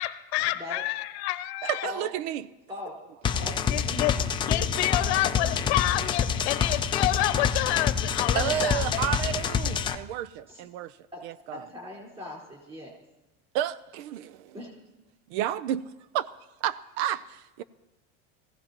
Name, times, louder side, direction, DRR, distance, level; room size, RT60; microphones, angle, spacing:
voice 1, 0.0-1.9 3.7-8.9, left 16 dB, 85° left, 12 dB, 0.9 m, -29 dB
voice 2, 0.5-0.9 1.8-2.1 2.7-3.0 3.4-5.7 10.5-10.7 11.1-11.2 11.5-12.9 14.5-14.7, left 1 dB, 15° right, -4 dB, 4.5 m, -41 dB
voice 3, 1.6-2.5 8.3-11.0 11.2-11.6 13.5-14.5 15.3-15.8 16.1-16.3 16.6-17.6, right 11 dB, 80° right, 16 dB, 0.6 m, -31 dB
sound 1, 3.2-9.9, left 7 dB, 15° left, 0.4 m, -27 dB
22.0 x 15.5 x 3.0 m, 1.0 s
cardioid pair, 160°, 32 cm